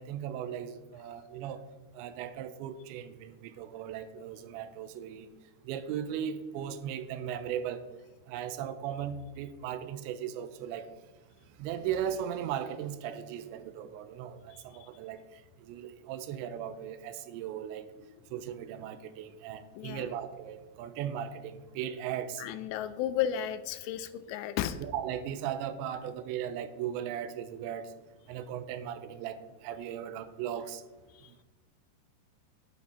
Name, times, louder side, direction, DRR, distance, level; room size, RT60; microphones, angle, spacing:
voice 1, 0.0-1.6 1.9-5.3 5.6-7.8 8.3-10.9 11.6-15.2 15.7-17.9 18.3-22.4 24.8-27.9 28.3-30.8, right 9 dB, 85° right, 12 dB, 2.9 m, -37 dB
voice 2, 14.5-14.9 18.0-18.1 19.8-20.1 22.4-24.8 31.1-31.4, left 10 dB, 85° left, 12 dB, 2.6 m, -34 dB
10.0 x 8.3 x 4.2 m, 1.2 s
omnidirectional pair, 5.1 m